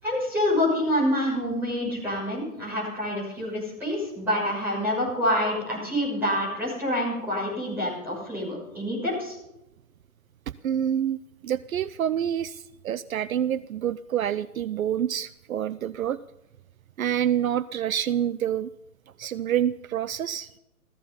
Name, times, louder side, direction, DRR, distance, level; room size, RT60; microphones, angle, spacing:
voice 1, 0.0-9.3, left 1 dB, 5° right, -7 dB, 6.2 m, -27 dB
voice 2, 10.6-11.2 11.4-16.2 17.0-18.7 19.2-20.5, right 10 dB, 70° right, 17 dB, 0.6 m, -27 dB
16.0 x 14.0 x 5.5 m, 0.90 s
hypercardioid pair, 160°, 44 cm